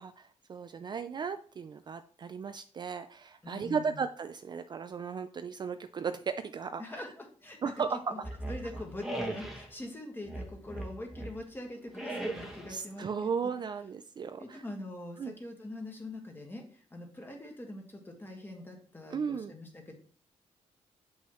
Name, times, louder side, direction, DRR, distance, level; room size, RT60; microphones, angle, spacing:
voice 1, 0.0-7.0 7.6-8.1 12.7-14.6 15.2-15.3 19.1-19.5, right 6 dB, 35° right, 9 dB, 0.3 m, -36 dB
voice 2, 3.4-4.0 6.8-8.2 8.5-13.5 14.4-20.0, left 1 dB, 15° left, 2 dB, 1.6 m, -44 dB
sound 1, 8.2-9.7 10.3-11.4 11.9-12.8, right 1 dB, 5° right, 1.2 m, -38 dB
7.9 x 5.5 x 3.1 m, 0.43 s
wide cardioid pair, 135°, 12 cm